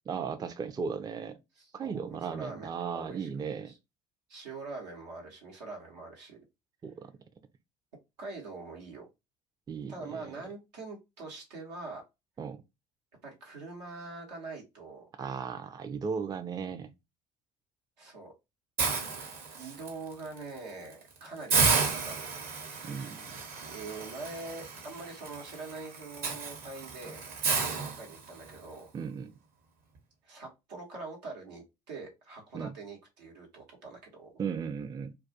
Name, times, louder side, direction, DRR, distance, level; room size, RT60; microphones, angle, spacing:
voice 1, 0.1-1.4 1.7-3.7 6.8-7.1 9.7-10.4 12.4-12.6 15.2-16.9 22.8-23.3 28.9-29.3 32.5-32.7 34.4-35.1, right 6 dB, 20° right, 0.4 m, -36 dB
voice 2, 1.6-3.3 3.7-3.8 4.3-6.4 8.2-9.1 9.9-12.0 13.2-15.1 18.0-18.3 19.5-22.4 23.6-27.2 28.0-28.9 30.2-34.3, right 3 dB, 85° right, 1.0 m, -44 dB
Hiss, 18.8-19.9 20.4-20.6 20.9-21.0 21.5-28.6, right 4 dB, 50° right, 0.9 m, -32 dB
2.2 x 2.2 x 2.6 m
hypercardioid pair, 60°, 20 cm